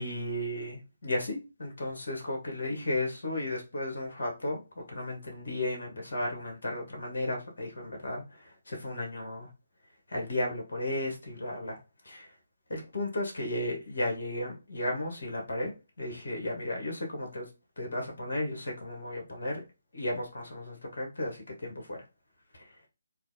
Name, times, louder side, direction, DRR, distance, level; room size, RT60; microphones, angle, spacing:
voice 1, 0.0-9.5 10.1-11.8 12.0-12.3 12.7-17.5 17.8-19.6 19.9-22.0 22.5-22.7, left 1 dB, 55° left, 1 dB, 1.1 m, -34 dB
3.1 x 2.4 x 2.6 m, 0.28 s
figure-of-eight pair, 145°, 0 cm